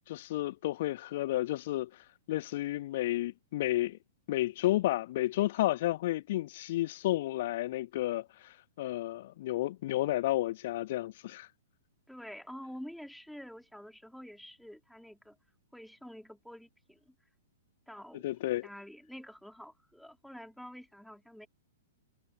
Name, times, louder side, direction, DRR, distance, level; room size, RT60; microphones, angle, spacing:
voice 1, 0.1-4.0 4.3-11.5 18.2-18.7, left 15 dB, 55° left, 0.3 m, -32 dB
voice 2, 12.1-15.4 15.7-17.1 17.9-18.4 18.6-21.5, equal, ahead, 4.6 m, -48 dB
figure-of-eight pair, 110°, 0 cm